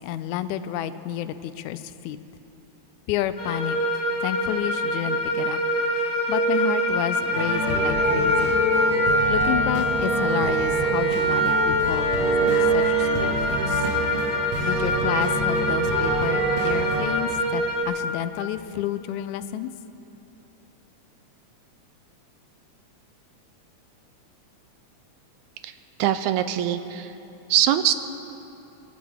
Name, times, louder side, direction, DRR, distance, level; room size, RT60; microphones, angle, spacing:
voice 1, 0.0-2.2 3.1-5.6 6.0-8.6 9.3-13.9 14.6-19.7, left 11 dB, 90° left, 13 dB, 2.0 m, -30 dB
sound 1, 3.4-17.8, right 1 dB, 40° left, 2.4 m, -24 dB
sound 2, 7.3-17.0, equal, 65° right, 2.9 m, -27 dB
voice 2, 26.0-27.1 27.5-27.9, right 12 dB, 85° right, 10 dB, 1.9 m, -22 dB
25.0 x 12.5 x 3.6 m, 2.9 s
omnidirectional pair, 3.3 m